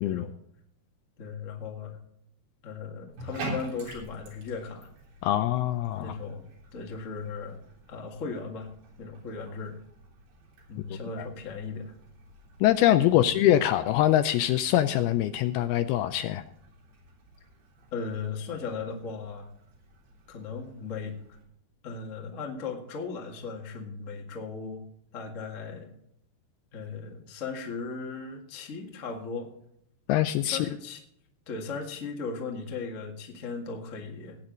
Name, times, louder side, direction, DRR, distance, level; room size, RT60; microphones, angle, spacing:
voice 1, 0.0-0.3 1.2-2.0 2.6-4.9 6.0-7.6 7.9-8.7 9.0-9.8 10.7-11.9 13.1-13.4 17.9-19.5 20.3-21.2 21.8-24.8 25.1-25.9 26.7-29.5 30.4-31.0 31.5-34.4, left 4 dB, 65° left, 1 dB, 0.7 m, -37 dB
Bathtub (filling or washing), 3.1-21.4, right 2 dB, 80° right, 5.7 m, -47 dB
voice 2, 5.2-6.1 12.6-16.4 30.1-30.6, left 12 dB, 80° left, 10 dB, 2.3 m, -23 dB
17.5 x 8.9 x 3.9 m, 0.72 s
omnidirectional pair, 4.9 m